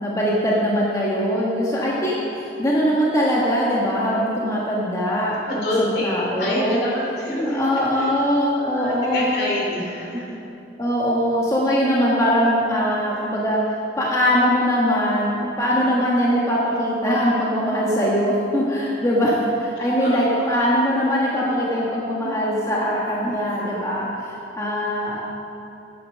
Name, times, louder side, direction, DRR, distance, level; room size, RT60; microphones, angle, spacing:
voice 1, 0.0-6.9 7.5-9.3 10.8-13.6 14.0-25.3, equal, 20° left, -5 dB, 1.3 m, -21 dB
voice 2, 5.4-8.1 8.5-10.4 19.2-19.3 19.8-20.6, left 1 dB, 60° left, -4 dB, 2.8 m, -27 dB
9.8 x 9.1 x 6.3 m, 2.8 s
head